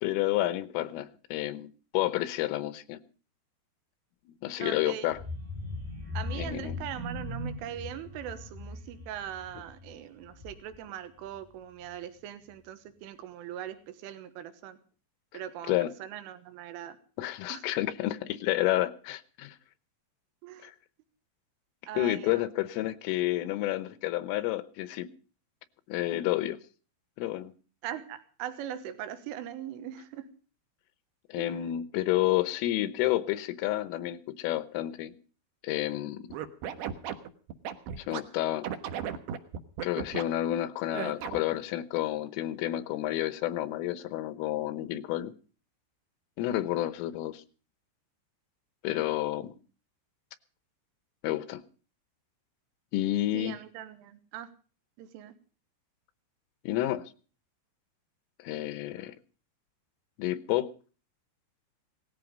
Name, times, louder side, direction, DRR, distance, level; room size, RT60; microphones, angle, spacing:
voice 1, 0.0-3.0 4.3-5.2 6.4-6.8 15.3-15.4 15.7-15.9 17.2-19.6 20.6-20.8 22.0-25.1 25.9-26.6 27.2-27.5 31.3-35.1 35.6-36.3 38.0-38.7 39.8-45.3 46.4-47.4 48.8-49.6 51.2-51.6 52.9-53.5 56.7-57.0 58.4-59.1 60.2-60.7, left 15 dB, 90° left, 15 dB, 3.6 m, -30 dB
voice 2, 4.6-5.1 6.2-14.8 15.3-17.0 17.5-17.6 20.4-20.7 21.9-22.5 27.8-30.3 31.4-31.6 53.3-54.5 55.0-55.3, right 10 dB, 85° right, 11 dB, 3.8 m, -41 dB
sound 1, 5.1-10.9 11.3-11.5 11.8-11.9, left 2 dB, 20° right, 0.9 m, -39 dB
Scratching (performance technique), 36.3-38.2 38.6-40.2 40.9-41.6, right 9 dB, 70° right, 2.9 m, -35 dB
18.5 x 14.0 x 5.1 m, 0.39 s
omnidirectional pair, 5.7 m